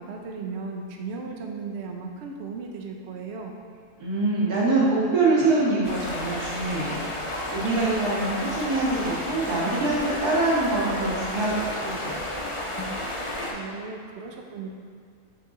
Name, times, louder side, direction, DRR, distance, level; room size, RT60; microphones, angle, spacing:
voice 1, 0.0-3.5 13.5-14.7, right 4 dB, 55° right, 2 dB, 0.8 m, -36 dB
voice 2, 4.0-12.2, right 2 dB, 75° right, -6 dB, 2.2 m, -25 dB
sound 1, 5.8-13.5, left 1 dB, 30° left, 0.5 m, -32 dB
6.8 x 6.6 x 3.7 m, 2.1 s
omnidirectional pair, 1.6 m